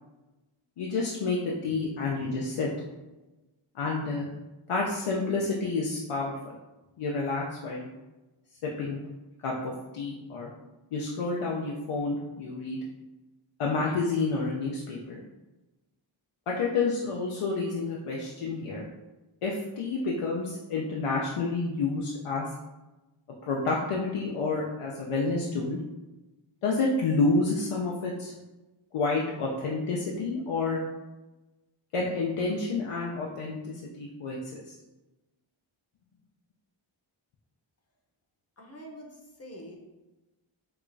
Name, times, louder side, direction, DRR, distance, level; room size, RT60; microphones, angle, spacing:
voice 1, 0.8-2.7 3.7-4.3 4.7-6.4 7.0-7.9 8.6-9.0 9.4-10.5 10.9-12.8 13.6-15.2 16.5-18.9 19.4-22.5 23.4-25.8 26.6-28.3 28.9-30.8 31.9-34.7, left 3 dB, 85° left, -2 dB, 0.6 m, -29 dB
voice 2, 38.6-39.8, equal, 30° left, -1 dB, 0.7 m, -45 dB
4.8 x 2.3 x 2.5 m, 1.1 s
wide cardioid pair, 90°, 50 cm